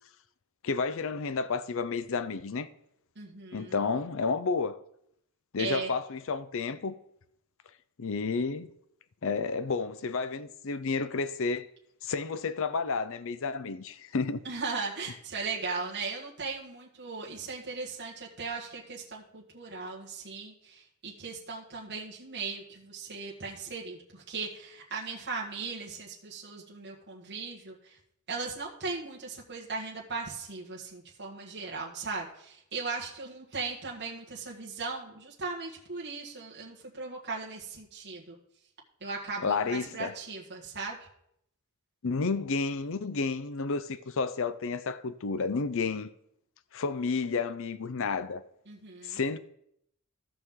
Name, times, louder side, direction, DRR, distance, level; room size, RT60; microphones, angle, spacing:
voice 1, 0.6-2.7 3.5-4.7 5.5-6.9 8.0-8.7 9.2-11.7 12.0-14.4 39.4-40.1 42.0-46.1 46.7-48.4 49.0-49.4, left 4 dB, 60° left, 0.6 m, -31 dB
voice 2, 3.2-3.9 5.6-5.9 14.4-28.0 28.3-38.4 39.0-41.0 48.7-49.2, right 4 dB, 50° right, 1.7 m, -38 dB
15.5 x 6.2 x 3.7 m
head